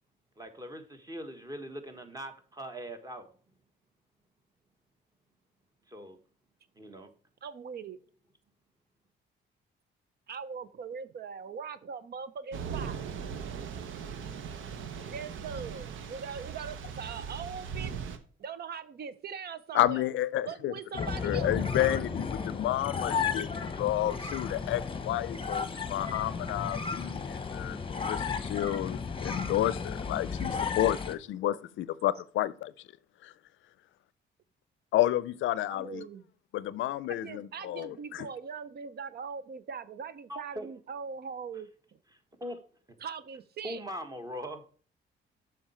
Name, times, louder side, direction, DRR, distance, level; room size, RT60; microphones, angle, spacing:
voice 1, 0.4-3.3 5.9-6.2 6.8-7.1 40.3-40.7 42.4-42.6 43.6-44.6, equal, 20° right, 1.4 m, -41 dB
voice 2, 7.4-8.0 10.3-13.0 15.1-17.9 18.4-20.0 20.5-21.7 35.7-36.3 37.1-41.7 43.0-43.8, right 6 dB, 55° right, 0.6 m, -41 dB
Thunder / Rain, 12.5-18.2, right 6 dB, 80° right, 0.9 m, -39 dB
voice 3, 19.7-32.7 33.2-33.3 34.9-36.1 36.5-38.3, left 13 dB, 75° left, 0.5 m, -31 dB
sound 1, 20.9-31.1, left 5 dB, 25° left, 0.9 m, -34 dB
7.4 x 5.7 x 4.3 m
cardioid pair, 90°, 20 cm